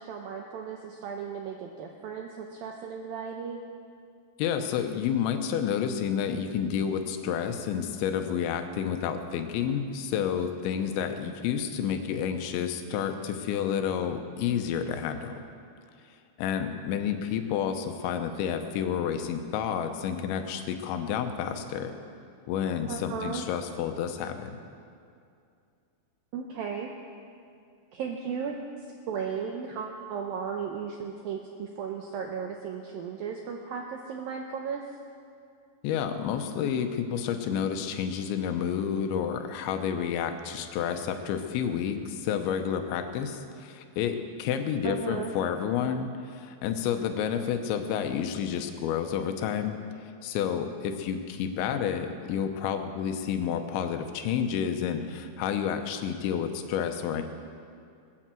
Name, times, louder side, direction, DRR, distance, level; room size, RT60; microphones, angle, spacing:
voice 1, 0.0-3.6 22.9-23.4 26.3-26.9 27.9-34.8 44.8-45.3, right 6 dB, 80° right, 2 dB, 2.1 m, -35 dB
voice 2, 4.4-15.4 16.4-21.9 22.5-24.6 35.8-57.2, left 8 dB, 80° left, 7 dB, 3.2 m, -30 dB
20.0 x 9.2 x 7.5 m, 2.4 s
omnidirectional pair, 5.2 m